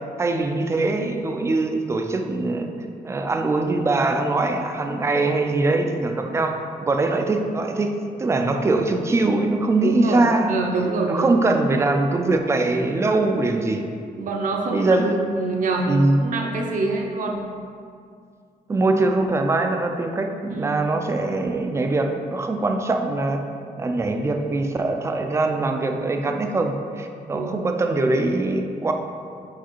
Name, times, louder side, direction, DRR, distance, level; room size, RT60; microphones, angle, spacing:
voice 1, 0.2-2.7 3.0-7.9 8.2-10.6 11.1-13.9 14.7-15.2 15.9-16.2 18.7-23.4 23.8-28.9, right 2 dB, 15° right, 5 dB, 0.3 m, -22 dB
voice 2, 9.8-11.5 14.2-14.9 15.3-15.9 16.2-17.4 20.5-20.8 27.3-27.7, right 3 dB, 55° right, 1 dB, 0.7 m, -26 dB
4.8 x 4.8 x 4.5 m, 2.3 s
wide cardioid pair, 175°, 16 cm